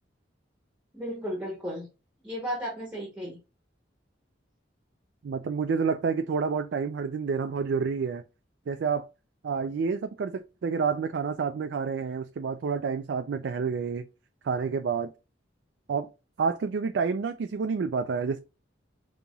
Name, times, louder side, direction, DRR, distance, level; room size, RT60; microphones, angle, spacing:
voice 1, 0.9-1.9 2.2-3.4, equal, 5° right, 0.9 m, -34 dB
voice 2, 5.2-8.2 8.7-9.1 9.4-14.0 14.4-15.1 15.9-16.1 16.4-18.4, right 5 dB, 65° right, 0.3 m, -29 dB
5.3 x 2.9 x 2.3 m
head